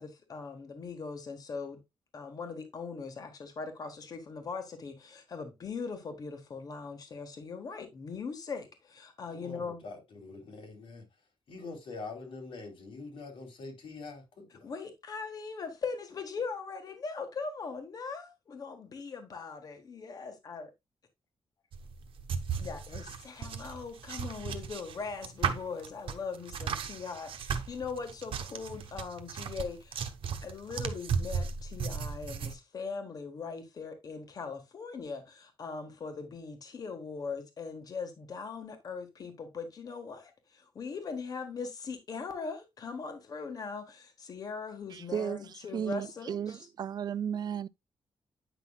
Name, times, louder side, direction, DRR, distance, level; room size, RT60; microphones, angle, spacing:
voice 1, 0.0-1.8 2.1-9.8 14.6-20.7 22.6-30.1 30.4-46.7, left 5 dB, 45° left, 1.4 m, -40 dB
voice 2, 9.3-11.1 11.5-14.7, left 3 dB, 80° left, 2.9 m, -44 dB
sound 1, 21.7-32.5, right 6 dB, 80° right, 1.0 m, -36 dB
voice 3, 44.9-47.7, right 8 dB, 50° right, 0.3 m, -35 dB
9.1 x 5.9 x 2.3 m
wide cardioid pair, 165°, 9 cm